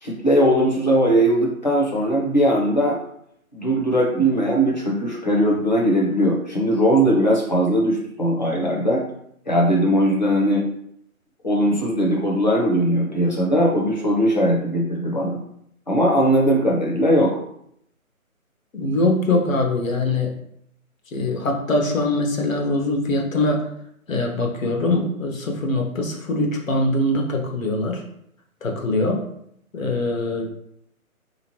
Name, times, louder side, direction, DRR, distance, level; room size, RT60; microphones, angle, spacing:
voice 1, 0.0-3.0 3.5-9.0 9.5-10.6 11.4-15.4 15.9-17.4, equal, 30° left, -3 dB, 0.6 m, -19 dB
voice 2, 18.7-20.3 21.1-23.7 24.1-28.0 28.6-29.2 29.7-30.5, left 2 dB, 65° left, 2 dB, 0.9 m, -22 dB
3.3 x 2.9 x 2.9 m, 0.72 s
figure-of-eight pair, 155°, 43 cm